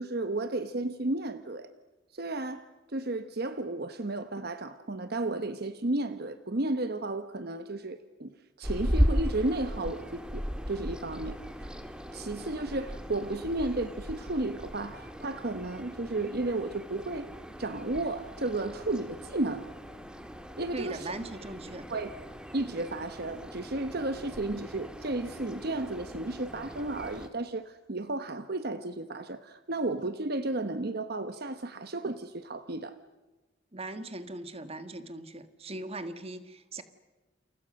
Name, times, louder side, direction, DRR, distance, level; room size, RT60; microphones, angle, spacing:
voice 1, 0.0-1.7 2.1-11.7 12.1-17.3 17.6-19.7 20.6-21.1 21.9-22.1 22.5-33.0, right 2 dB, 50° right, 10 dB, 1.0 m, -33 dB
sound 1, 8.6-27.3, equal, 5° right, 1.9 m, -37 dB
voice 2, 20.7-21.9 33.7-36.8, right 2 dB, 30° right, 10 dB, 1.7 m, -39 dB
29.0 x 28.5 x 6.5 m, 1.2 s
head